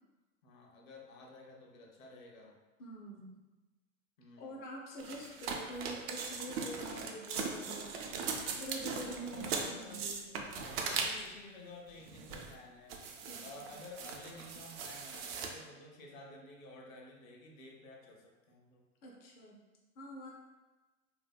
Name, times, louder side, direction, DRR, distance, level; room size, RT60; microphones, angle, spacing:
voice 1, 0.4-2.6 4.2-4.6 9.2-10.1 10.5-13.0 13.4-18.9, left 2 dB, 75° left, 0 dB, 0.8 m, -52 dB
voice 2, 2.8-3.4 4.4-8.0 8.6-10.4 13.3-13.8 19.0-19.6 20.0-20.3, equal, 25° left, -3 dB, 0.4 m, -46 dB
sound 1, 5.0-11.4 12.0-12.5 12.9-15.5, right 5 dB, 50° right, 0.5 m, -39 dB
2.7 x 2.6 x 2.2 m, 1.2 s
hypercardioid pair, 110°, 41 cm